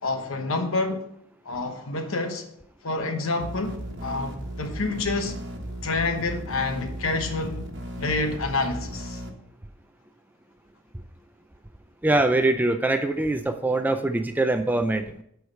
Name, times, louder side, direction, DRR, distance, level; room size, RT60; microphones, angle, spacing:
voice 1, 0.0-1.1 1.4-2.4 2.8-5.3 5.8-7.7 8.0-9.2, left 3 dB, 70° left, 1.1 m, -28 dB
sound 1, 3.4-9.3, equal, 55° right, 1.2 m, -36 dB
voice 2, 12.0-15.2, right 2 dB, 10° right, 0.4 m, -23 dB
8.2 x 4.7 x 5.4 m
head